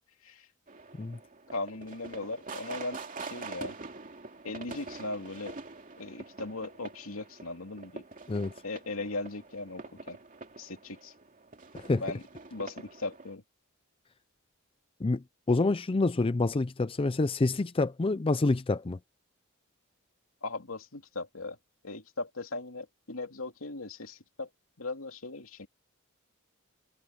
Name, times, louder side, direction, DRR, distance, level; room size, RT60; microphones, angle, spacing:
sound 1, 0.7-13.3, right 3 dB, 40° right, 2.7 m, -45 dB
voice 1, 1.5-3.8 4.4-5.6 6.0-8.0 8.6-10.2 10.6-11.1 12.0-12.2 12.5-13.4 20.4-21.6 21.8-24.5 24.8-25.7, left 2 dB, 75° left, 2.9 m, -38 dB
voice 2, 15.0-19.0, left 3 dB, 25° left, 0.5 m, -27 dB
head